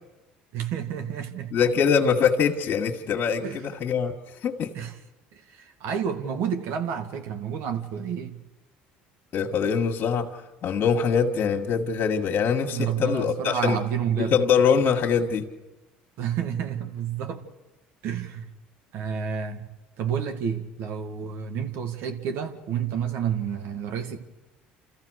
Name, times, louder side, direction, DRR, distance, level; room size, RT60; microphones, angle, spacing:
voice 1, 0.5-1.6 3.4-3.6 4.7-4.9 5.3-8.4 12.7-14.4 16.2-17.4 18.0-18.5 18.9-19.7 20.0-24.2, right 8 dB, 65° right, 1.9 m, -30 dB
voice 2, 1.5-4.1 4.4-4.7 9.3-10.3 10.6-13.8 14.1-15.5, left 6 dB, 50° left, 1.8 m, -23 dB
28.0 x 14.5 x 6.5 m
supercardioid pair, 80°, 4 cm